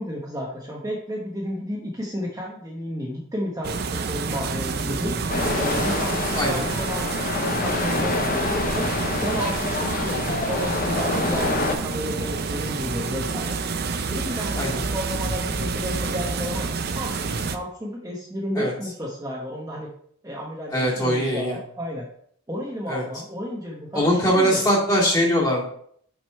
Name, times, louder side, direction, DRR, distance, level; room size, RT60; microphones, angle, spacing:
voice 1, 0.0-5.1 5.6-8.9 9.2-13.6 14.1-19.9 20.2-22.1 22.5-24.6, equal, 15° right, -3 dB, 0.9 m, -32 dB
sound 1, 3.6-17.6, right 4 dB, 45° right, 0.5 m, -28 dB
sound 2, 5.3-11.8, left 2 dB, 40° left, 0.7 m, -26 dB
voice 2, 6.3-6.6 14.5-14.8 18.6-18.7 20.7-21.6 22.9-23.0 23.9-25.6, equal, 20° left, -5 dB, 2.1 m, -21 dB
6.1 x 5.2 x 4.4 m, 0.63 s
head